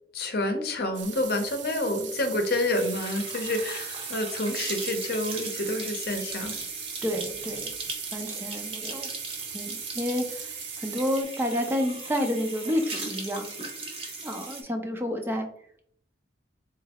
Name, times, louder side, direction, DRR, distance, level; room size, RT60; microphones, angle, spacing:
voice 1, 0.1-6.6, left 1 dB, 60° left, 5 dB, 0.7 m, -28 dB
sound 1, 0.9-11.2, right 9 dB, 90° right, 0.5 m, -40 dB
sound 2, 2.7-14.6, right 3 dB, 35° right, 0.8 m, -37 dB
voice 2, 7.0-7.7 8.1-9.1 9.5-13.5 14.2-15.5, equal, 15° right, 4 dB, 0.4 m, -30 dB
3.8 x 3.1 x 2.9 m, 0.65 s
head